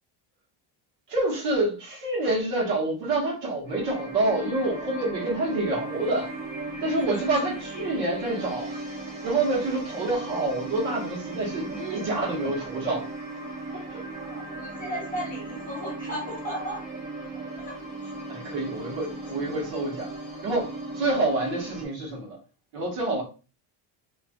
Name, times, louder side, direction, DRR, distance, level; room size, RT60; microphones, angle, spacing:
voice 1, 1.1-6.3 6.8-8.7 9.2-13.1 13.7-14.0 18.3-20.1 20.4-20.7 20.9-22.4 22.7-23.2, right 2 dB, 70° right, 1.6 m, -27 dB
sound 1, 3.7-21.8, right 2 dB, 25° right, 0.9 m, -37 dB
voice 2, 7.1-7.4 7.7-7.9 8.7-8.8 14.2-16.8 17.6-17.7 18.0-18.1, equal, 20° left, 1.1 m, -35 dB
3.4 x 3.0 x 2.4 m
cardioid pair, 175°, 42 cm